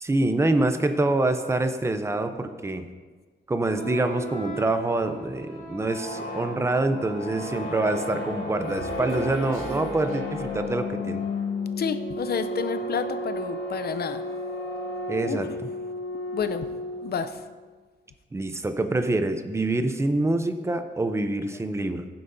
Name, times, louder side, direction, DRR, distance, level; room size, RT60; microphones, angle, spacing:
voice 1, 0.0-2.9 3.5-11.2 15.1-15.5 18.3-22.1, right 2 dB, 15° right, 8 dB, 0.5 m, -26 dB
sound 1, 3.6-17.4, left 1 dB, 80° left, 2.7 m, -33 dB
Human voice, 8.1-11.0, right 2 dB, 85° right, 1.9 m, -41 dB
voice 2, 11.8-14.2 15.2-15.4 16.3-16.7 17.0-17.4, left 7 dB, 50° left, 11 dB, 0.6 m, -30 dB
15.5 x 7.8 x 2.7 m, 1.4 s
wide cardioid pair, 160°, 21 cm